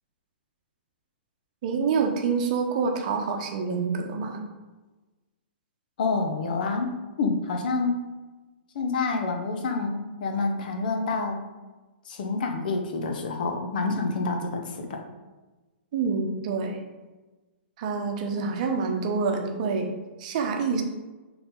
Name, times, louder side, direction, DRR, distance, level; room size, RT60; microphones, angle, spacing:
voice 1, 1.6-4.4 15.9-16.8 17.8-19.9 20.2-20.8, right 5 dB, 40° right, 3 dB, 0.9 m, -27 dB
voice 2, 6.0-6.9 7.2-8.0 8.7-11.4 12.0-15.0 18.3-18.6, left 3 dB, 50° left, 3 dB, 1.1 m, -28 dB
9.7 x 3.6 x 3.9 m, 1.2 s
figure-of-eight pair, 110°, 6 cm